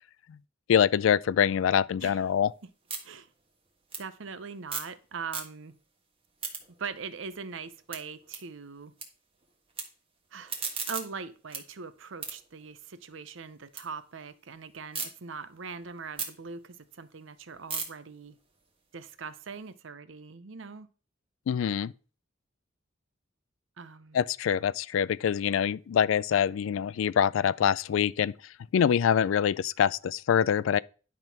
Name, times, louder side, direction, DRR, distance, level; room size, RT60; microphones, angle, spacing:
voice 1, 0.7-2.5 21.5-21.9 24.1-28.3 28.7-30.8, left 8 dB, 80° left, 0.3 m, -25 dB
sound 1, 2.2-5.0 5.2-5.9 6.2-9.1 9.3-9.8 10.2-13.8 14.2-15.1 15.5-19.7, right 5 dB, 30° right, 1.5 m, -40 dB
voice 2, 4.0-5.7 6.8-8.9 10.3-10.5 10.9-18.4 18.9-20.9 23.8-24.2, right 5 dB, 75° right, 0.7 m, -41 dB
10.5 x 3.7 x 5.8 m
head